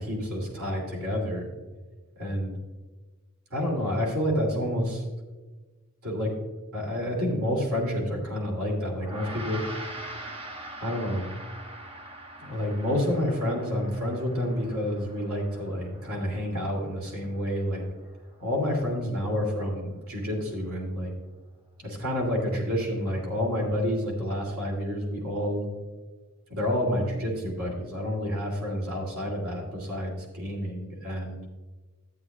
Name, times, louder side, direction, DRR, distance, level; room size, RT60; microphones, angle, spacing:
voice 1, 0.0-1.5 2.2-2.5 3.5-5.0 6.0-6.3 6.7-9.7 10.8-11.3 12.4-17.8 18.4-21.1 21.8-25.7 26.5-31.4, equal, 70° right, -2 dB, 2.9 m, -29 dB
Gong, 9.0-18.6, right 1 dB, 25° right, 0.9 m, -43 dB
14.0 x 8.7 x 2.4 m, 1.3 s
head